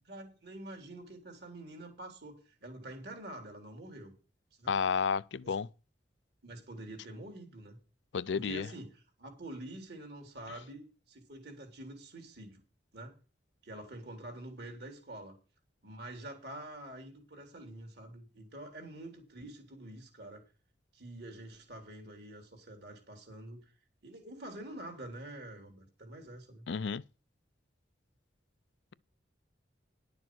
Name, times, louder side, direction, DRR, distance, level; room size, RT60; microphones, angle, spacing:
voice 1, 0.0-4.1 4.6-4.8 5.4-5.6 6.4-7.8 8.3-12.6 12.9-13.2 13.6-15.4 15.8-20.4 20.9-23.6 24.0-26.7, right 1 dB, 60° right, 3.7 m, -47 dB
voice 2, 4.7-5.7 8.1-8.7 26.7-27.0, left 6 dB, 75° left, 0.5 m, -31 dB
11.5 x 6.9 x 6.1 m
head